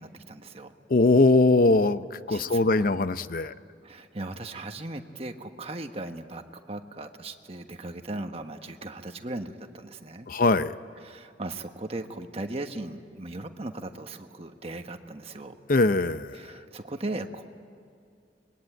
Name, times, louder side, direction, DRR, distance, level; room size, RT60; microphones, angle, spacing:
voice 1, 0.0-0.7 2.3-2.8 3.8-10.3 11.0-15.6 16.3-17.4, right 2 dB, 35° right, 6 dB, 1.3 m, -38 dB
voice 2, 0.9-3.5 10.3-10.7 15.7-16.6, left 2 dB, 50° left, 13 dB, 0.6 m, -22 dB
25.5 x 21.5 x 9.0 m, 2.4 s
head